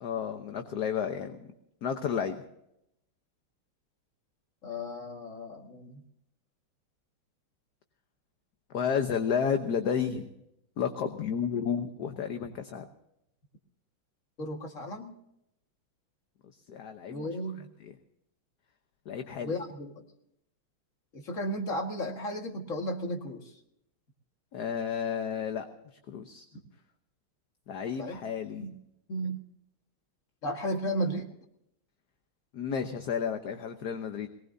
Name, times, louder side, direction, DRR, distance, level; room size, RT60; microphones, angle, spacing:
voice 1, 0.0-1.5 1.8-2.4 8.7-10.3 10.8-12.8 16.7-17.3 17.8-17.9 19.1-19.6 24.5-25.7 26.1-26.4 27.7-28.7 32.5-34.3, left 7 dB, 55° left, 6 dB, 1.4 m, -31 dB
voice 2, 4.6-6.0 14.4-15.1 17.1-17.7 19.4-20.0 21.1-23.4 28.0-28.2 28.6-28.7 29.1-29.4 30.4-31.3, equal, 40° left, 3 dB, 2.1 m, -34 dB
22.5 x 19.5 x 2.7 m, 0.80 s
omnidirectional pair, 2.3 m